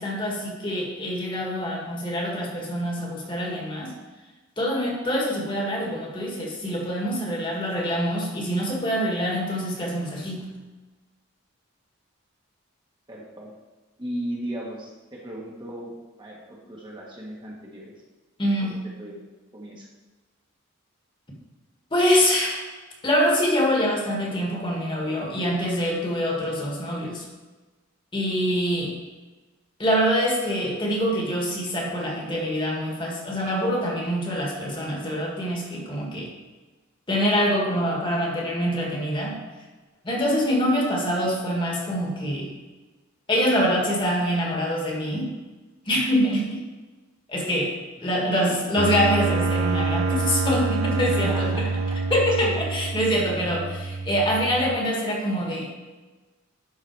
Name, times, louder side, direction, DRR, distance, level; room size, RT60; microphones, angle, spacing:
voice 1, 0.0-3.9 4.6-10.4 18.4-18.8 21.9-22.6 23.0-27.2 28.1-28.9 29.8-36.3 37.1-39.4 40.0-42.5 43.3-45.3 45.9-46.6 47.3-47.7 48.0-51.7 52.1-55.7, equal, 25° left, -2 dB, 1.6 m, -25 dB
voice 2, 13.1-13.5 14.0-17.9 18.6-19.2 19.5-19.9 48.0-48.6 51.0-52.0 52.4-52.5 53.4-53.5, right 1 dB, 25° right, -4 dB, 1.3 m, -37 dB
sound 1, 48.8-54.8, right 3 dB, 80° right, 0.5 m, -26 dB
11.5 x 3.9 x 4.6 m, 1.2 s
head